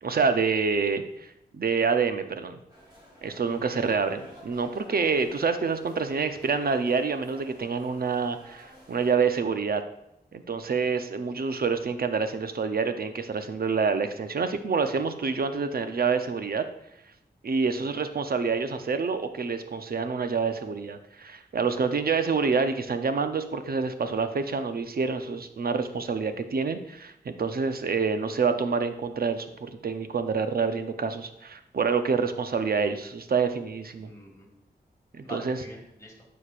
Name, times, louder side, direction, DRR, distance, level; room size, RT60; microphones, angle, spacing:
voice 1, 0.0-2.6 3.2-9.8 10.3-16.6 17.4-34.1 35.1-35.6, right 5 dB, 60° right, 9 dB, 0.6 m, -27 dB
sound 1, 2.7-9.1, equal, 25° right, 2.7 m, -51 dB
voice 2, 3.5-3.8 17.7-18.1 34.0-34.5 35.2-36.3, equal, 15° left, -2 dB, 2.0 m, -45 dB
9.8 x 6.5 x 2.5 m, 0.82 s
wide cardioid pair, 95°, 17 cm